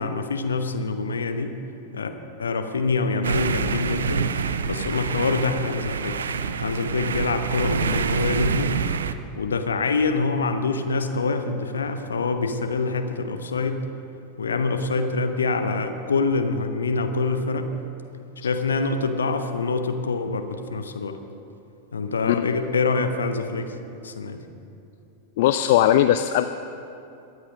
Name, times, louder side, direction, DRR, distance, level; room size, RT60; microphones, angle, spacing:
voice 1, 0.0-1.5 1.9-2.1 2.4-4.3 4.7-6.2 6.6-8.8 9.4-13.8 14.4-17.7 18.4-21.2 21.9-23.7 24.0-24.4, left 4 dB, 70° left, 7 dB, 1.1 m, -25 dB
sound 1, 3.2-9.1, right 6 dB, 70° right, 0.6 m, -26 dB
voice 2, 25.4-26.5, left 12 dB, 50° left, 10 dB, 0.4 m, -19 dB
23.0 x 8.0 x 5.2 m, 2.7 s
figure-of-eight pair, 90°, 0 cm